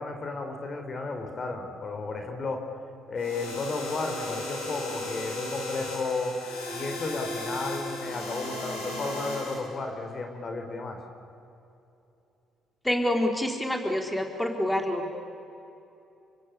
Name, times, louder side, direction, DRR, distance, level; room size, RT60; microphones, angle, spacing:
voice 1, 0.0-2.6 3.1-6.3 6.7-11.0, left 3 dB, 45° left, 5 dB, 4.5 m, -33 dB
sound 1, 3.2-9.5, left 1 dB, 85° left, 6.3 m, -35 dB
voice 2, 12.8-15.1, left 1 dB, 5° left, 3 dB, 4.2 m, -27 dB
28.5 x 24.0 x 8.6 m, 2.8 s
hypercardioid pair, 50°, 0 cm